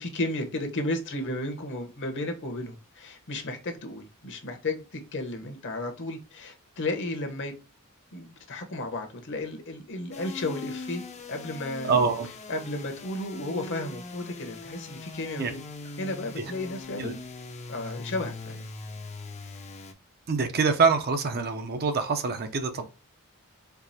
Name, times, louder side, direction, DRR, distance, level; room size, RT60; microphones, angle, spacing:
voice 1, 0.0-7.5 8.1-11.0 11.3-12.0 12.5-15.6 16.0-17.2 17.7-18.6, left 2 dB, 55° left, 0.9 m, -33 dB
sound 1, 10.1-19.9, left 3 dB, 30° left, 0.5 m, -41 dB
voice 2, 11.8-12.3 15.4-15.5 16.4-16.5 17.0-17.1 20.3-22.9, right 4 dB, 45° right, 0.5 m, -25 dB
4.6 x 2.4 x 2.7 m
head